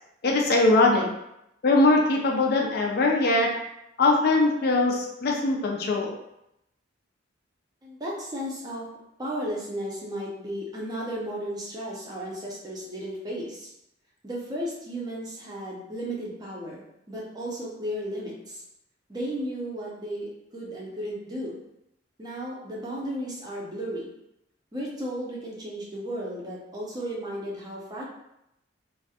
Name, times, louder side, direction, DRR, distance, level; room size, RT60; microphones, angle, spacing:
voice 1, 0.2-1.1 1.6-3.6 4.0-6.1, left 2 dB, 50° left, 0 dB, 0.3 m, -21 dB
voice 2, 7.8-8.9 9.2-13.7 14.2-18.6 19.1-21.6 22.2-24.1 24.7-28.0, equal, 20° right, -4 dB, 0.5 m, -34 dB
2.3 x 2.0 x 2.7 m, 0.83 s
head